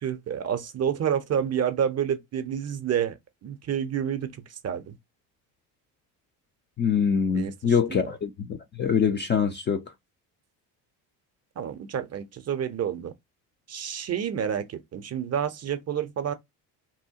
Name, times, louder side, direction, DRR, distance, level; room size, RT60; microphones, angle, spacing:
voice 1, 0.0-5.0 7.3-8.1 11.6-13.1 13.7-16.3, right 8 dB, 35° right, 0.5 m, -29 dB
voice 2, 6.8-9.8, left 7 dB, 25° left, 0.3 m, -24 dB
2.7 x 2.0 x 2.7 m
hypercardioid pair, 65°, 47 cm